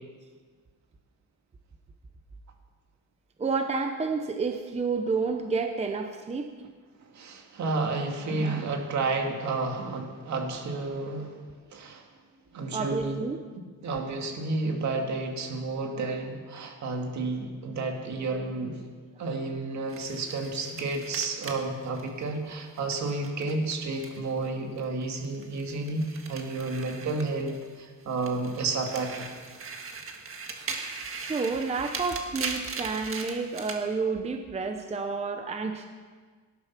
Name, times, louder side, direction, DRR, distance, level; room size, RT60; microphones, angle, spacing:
voice 1, 3.4-6.5 12.7-13.4 31.2-35.9, right 4 dB, 20° right, 6 dB, 0.7 m, -30 dB
voice 2, 7.0-11.4 11.7-12.1 12.5-13.2 13.8-18.9 19.2-29.3, right 3 dB, 60° right, 3 dB, 2.3 m, -31 dB
sound 1, 19.9-24.5 24.8-27.7 28.1-33.8, right 4 dB, 45° right, 1.7 m, -39 dB
18.5 x 11.5 x 6.0 m, 1.5 s
wide cardioid pair, 175°, 31 cm